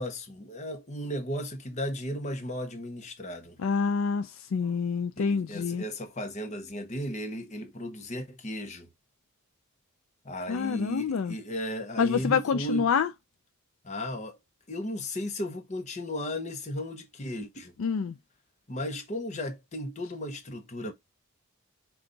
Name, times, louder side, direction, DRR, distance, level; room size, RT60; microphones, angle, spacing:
voice 1, 0.0-3.6 5.2-8.9 10.2-12.9 13.8-14.4 14.7-17.7 18.7-20.9, equal, 35° left, 0.8 m, -35 dB
voice 2, 3.6-5.8 10.5-11.4 12.0-13.1 17.8-18.1, left 6 dB, 65° left, 0.4 m, -27 dB
5.2 x 2.4 x 3.8 m
head